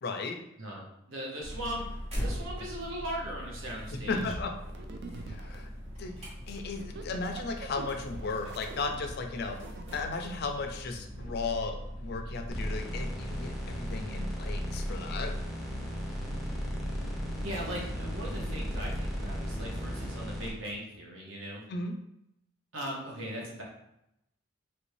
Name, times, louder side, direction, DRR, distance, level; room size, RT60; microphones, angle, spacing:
voice 1, 0.0-0.4 4.1-4.5 5.3-5.7 6.0-9.6 9.9-15.3 21.7-21.9, left 4 dB, 50° left, 4 dB, 0.4 m, -35 dB
voice 2, 0.6-1.9 2.2-4.2 17.4-21.6 22.7-23.6, equal, 70° right, -2 dB, 0.9 m, -39 dB
sound 1, 1.4-20.1, equal, 30° right, 1.0 m, -40 dB
sound 2, 4.1-5.6 6.6-10.3 11.1-11.3, right 3 dB, 55° right, 0.3 m, -44 dB
sound 3, 12.5-20.5, equal, ahead, 0.5 m, -36 dB
3.2 x 2.6 x 3.1 m, 0.82 s
head